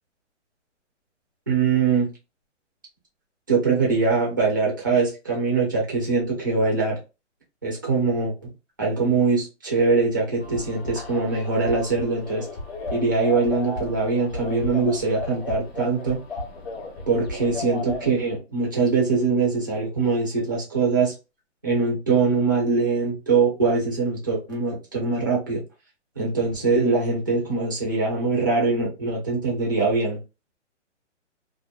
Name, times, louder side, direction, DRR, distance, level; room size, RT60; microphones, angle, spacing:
voice 1, 1.5-2.1 3.5-7.0 7.6-8.3 8.8-12.5 12.9-16.2 17.1-21.1 21.6-25.6 26.2-30.2, right 4 dB, 20° right, -2 dB, 0.4 m, -22 dB
sound 1, 10.4-18.1, left 3 dB, 55° left, 1.0 m, -34 dB
2.8 x 2.1 x 2.2 m, 0.29 s
hypercardioid pair, 160°, 37 cm